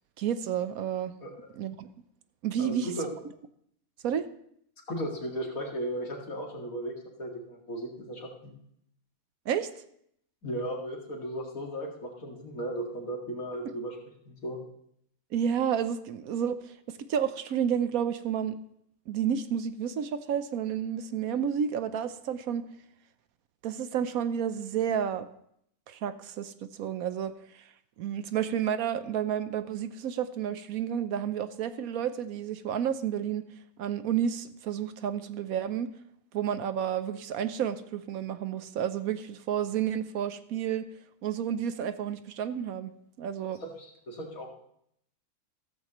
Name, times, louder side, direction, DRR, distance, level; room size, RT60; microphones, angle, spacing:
voice 1, 0.2-1.1 1.6-1.9 2.4-2.9 4.0-4.3 9.5-9.7 15.3-16.6 17.0-18.6 19.1-22.6 23.6-25.3 25.9-26.5 26.8-27.4 28.0-33.4 33.8-35.9 36.3-40.9 41.2-42.9 43.2-43.6, right 8 dB, 70° right, 12 dB, 1.1 m, -30 dB
voice 2, 2.6-3.1 4.9-8.5 10.4-14.0 14.3-14.6 43.6-44.5, right 1 dB, 65° left, 0 dB, 2.5 m, -36 dB
14.5 x 13.5 x 3.0 m, 0.70 s
omnidirectional pair, 1.6 m